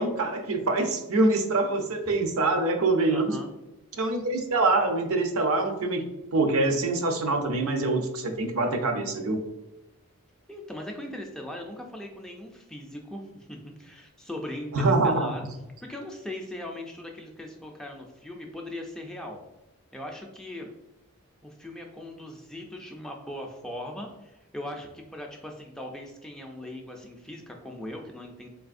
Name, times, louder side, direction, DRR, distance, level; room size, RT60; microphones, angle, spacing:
voice 1, 0.0-3.3 3.9-9.4 14.7-15.3, right 2 dB, 70° right, 5 dB, 0.6 m, -25 dB
voice 2, 3.1-3.5 10.5-15.5 15.8-19.4 19.9-20.7 21.4-28.5, left 1 dB, 5° left, 1 dB, 0.3 m, -39 dB
3.9 x 3.4 x 2.5 m, 0.97 s
head